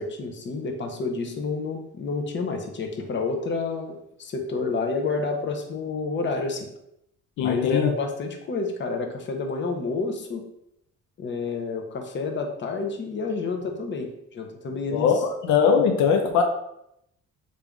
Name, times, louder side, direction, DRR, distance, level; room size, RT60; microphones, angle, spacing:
voice 1, 0.0-6.7 7.4-10.5 11.2-15.1 16.2-16.4, left 4 dB, 40° left, 4 dB, 0.7 m, -29 dB
voice 2, 7.4-7.9 14.9-16.4, left 6 dB, 75° left, 4 dB, 0.5 m, -21 dB
3.3 x 2.6 x 3.4 m, 0.79 s
cardioid pair, 90°, 30 cm